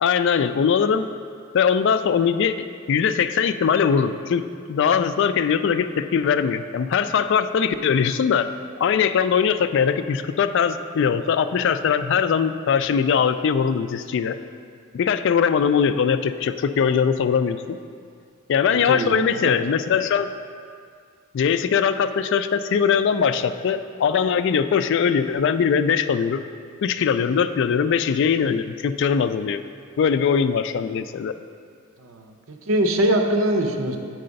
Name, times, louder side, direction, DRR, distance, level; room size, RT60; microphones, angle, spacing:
voice 1, 0.0-1.1 1.5-8.5 8.8-14.4 14.9-17.8 18.5-20.3 21.3-26.4 26.8-29.6 30.0-31.3, left 7 dB, 60° left, 11 dB, 0.3 m, -21 dB
voice 2, 18.7-19.6 32.0-34.0, right 1 dB, 80° right, 5 dB, 0.7 m, -23 dB
7.6 x 4.8 x 5.2 m, 2.2 s
head